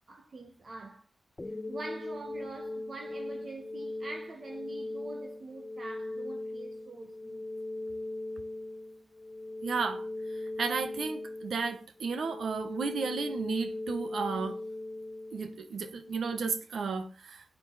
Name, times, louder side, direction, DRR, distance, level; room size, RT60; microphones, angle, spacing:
voice 1, 0.1-1.0 1.4-7.5, right 2 dB, 60° right, 1.7 m, -45 dB
sound 1, 1.4-16.4, left 2 dB, 25° left, 1.8 m, -39 dB
voice 2, 9.6-10.1 10.6-14.6 15.3-17.4, right 5 dB, 90° right, 1.1 m, -33 dB
12.5 x 9.4 x 4.1 m
cardioid pair, 60°, 0 cm